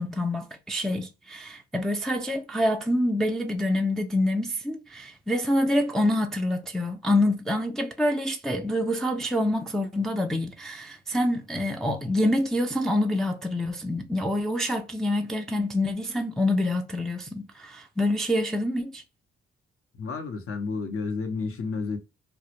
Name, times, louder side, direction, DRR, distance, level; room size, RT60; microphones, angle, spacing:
voice 1, 0.0-19.0, left 1 dB, ahead, 0.4 m, -26 dB
voice 2, 19.9-22.0, left 4 dB, 50° left, 0.8 m, -31 dB
2.1 x 2.1 x 2.8 m
supercardioid pair, 50°, 29 cm